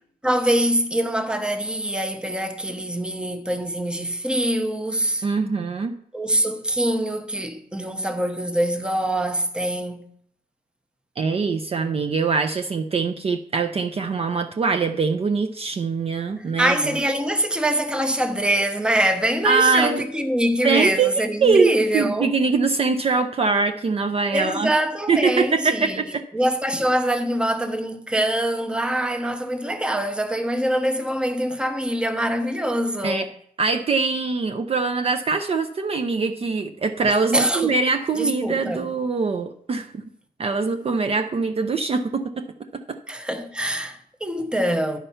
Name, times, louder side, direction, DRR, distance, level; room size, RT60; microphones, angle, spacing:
voice 1, 0.2-5.3 6.1-10.1 16.3-22.3 24.3-26.0 26.3-33.2 37.3-37.7 38.2-38.9 43.1-45.0, right 1 dB, 5° right, 0.6 m, -24 dB
voice 2, 5.2-6.0 11.2-16.8 19.4-20.1 20.6-21.1 21.4-24.7 25.1-26.2 33.0-33.3 33.6-40.1 40.4-42.5 42.7-43.0, right 4 dB, 40° right, 0.4 m, -23 dB
10.0 x 4.4 x 5.6 m
wide cardioid pair, 165°, 16 cm